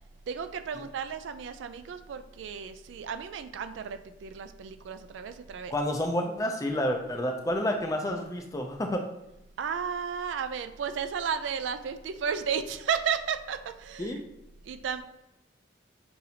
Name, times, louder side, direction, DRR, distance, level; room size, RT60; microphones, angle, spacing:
voice 1, 0.3-5.7 9.6-14.2 14.7-15.0, right 7 dB, 75° right, 10 dB, 0.3 m, -33 dB
voice 2, 5.7-9.0 14.0-14.2, left 1 dB, 15° left, 3 dB, 0.4 m, -29 dB
5.6 x 2.6 x 2.8 m, 0.93 s
head